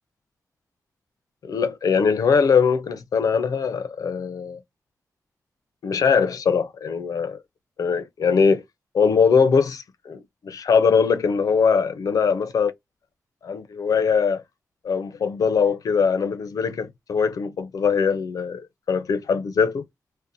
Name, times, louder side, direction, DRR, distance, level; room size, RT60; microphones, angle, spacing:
voice 1, 1.4-4.6 5.8-7.4 7.8-8.6 8.9-12.7 13.4-14.4 14.8-19.8, left 5 dB, 70° left, 0.4 m, -21 dB
2.5 x 2.1 x 2.7 m
wide cardioid pair, 175°, 6 cm